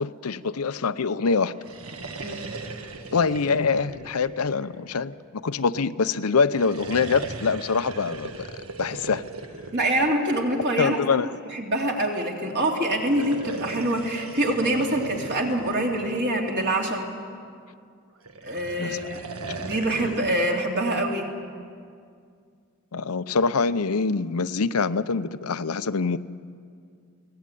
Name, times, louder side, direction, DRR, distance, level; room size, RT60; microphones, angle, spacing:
voice 1, 0.0-1.5 3.1-5.1 5.4-8.5 8.8-9.2 10.8-11.3 18.8-19.0 22.9-26.2, left 4 dB, 90° left, 13 dB, 0.7 m, -24 dB
sound 1, 1.5-5.1 6.4-10.8 12.9-16.9 18.2-20.5, right 3 dB, 75° right, 1.5 m, -38 dB
voice 2, 9.7-11.0 11.5-17.1 18.4-19.2 19.6-21.3, right 1 dB, 50° right, 0 dB, 3.1 m, -25 dB
23.0 x 18.0 x 9.2 m, 2.2 s
head